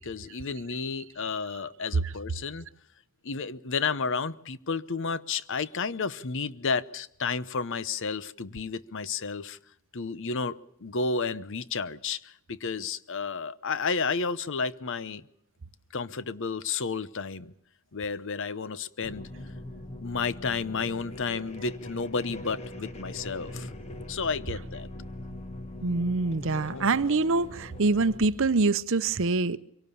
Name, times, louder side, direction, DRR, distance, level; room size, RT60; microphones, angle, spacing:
voice 1, 0.0-2.7 3.2-9.6 9.9-15.2 15.9-17.5 17.9-19.3 20.0-23.7 24.1-24.9 26.7-27.0, left 5 dB, 55° left, 0.8 m, -32 dB
sound 1, 19.0-28.3, left 1 dB, 30° left, 1.7 m, -42 dB
voice 2, 25.8-29.6, right 3 dB, 60° right, 0.8 m, -25 dB
24.0 x 18.0 x 7.0 m
head